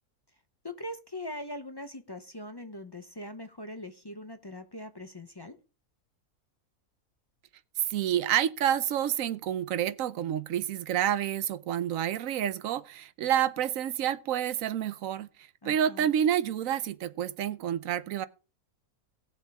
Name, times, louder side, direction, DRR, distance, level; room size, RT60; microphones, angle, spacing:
voice 1, 0.6-5.6 15.6-16.1, left 1 dB, 25° left, 0.5 m, -41 dB
voice 2, 7.9-15.3 15.6-18.3, right 10 dB, 65° right, 1.0 m, -29 dB
17.0 x 7.2 x 3.5 m
omnidirectional pair, 1.6 m